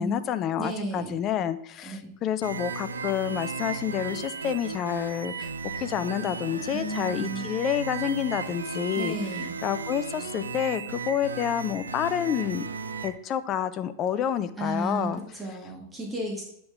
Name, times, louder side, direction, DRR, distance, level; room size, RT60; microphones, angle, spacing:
voice 1, 0.0-5.5 5.8-9.2 9.6-12.7 13.0-15.2, left 9 dB, 35° left, 12 dB, 0.4 m, -29 dB
voice 2, 0.6-1.1 1.8-2.1 6.7-7.5 9.0-9.5 14.6-16.4, right 1 dB, 10° right, -2 dB, 1.4 m, -33 dB
sound 1, 2.4-13.1, right 5 dB, 75° right, 0.5 m, -35 dB
8.6 x 3.8 x 3.4 m, 0.78 s
figure-of-eight pair, 90°, 0 cm